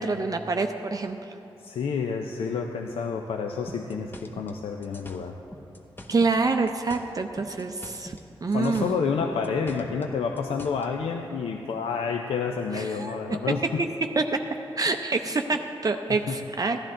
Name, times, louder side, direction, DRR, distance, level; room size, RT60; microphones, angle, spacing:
voice 1, 0.0-1.3 6.1-8.2 8.4-9.0 12.8-13.4 14.2-14.3 14.8-16.8, right 3 dB, 40° right, 5 dB, 0.5 m, -26 dB
voice 2, 1.6-5.3 8.5-13.8 16.1-16.4, left 5 dB, 85° left, 4 dB, 0.4 m, -29 dB
sound 1, 3.7-6.4 6.7-8.3 8.5-10.9, left 1 dB, 20° left, 0.9 m, -44 dB
14.0 x 10.5 x 3.7 m, 2.9 s
cardioid pair, 55°, 9 cm